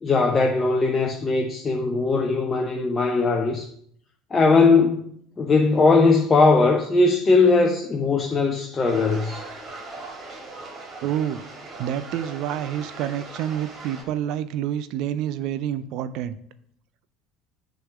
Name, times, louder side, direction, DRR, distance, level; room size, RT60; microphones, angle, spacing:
voice 1, 0.0-3.7 4.3-5.1 5.4-9.4, left 3 dB, 25° left, 0.8 m, -19 dB
sound 1, 8.8-14.0, right 3 dB, 40° right, 2.4 m, -39 dB
voice 2, 11.0-11.4 11.8-16.4, right 10 dB, 60° right, 0.4 m, -28 dB
6.9 x 3.9 x 6.0 m
hypercardioid pair, 70°, 0 cm